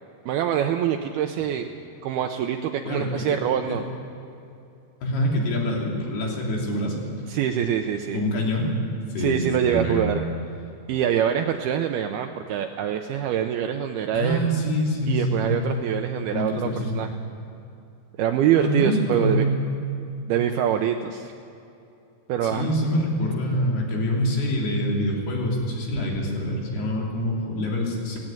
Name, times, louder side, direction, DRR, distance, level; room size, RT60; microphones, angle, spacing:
voice 1, 0.3-1.7 2.0-3.8 7.3-8.2 9.2-10.2 10.9-14.4 15.1-16.7 16.9-17.2 18.2-19.5 20.3-21.3 22.3-22.7, right 9 dB, 75° right, 5 dB, 2.4 m, -24 dB
voice 2, 2.9-3.4 3.7-3.8 5.0-7.0 8.1-8.7 9.2-10.1 14.1-15.6 16.3-17.0 18.5-19.6 22.4-28.2, equal, 65° left, -1 dB, 5.2 m, -25 dB
18.0 x 17.0 x 9.0 m, 2.6 s
omnidirectional pair, 5.0 m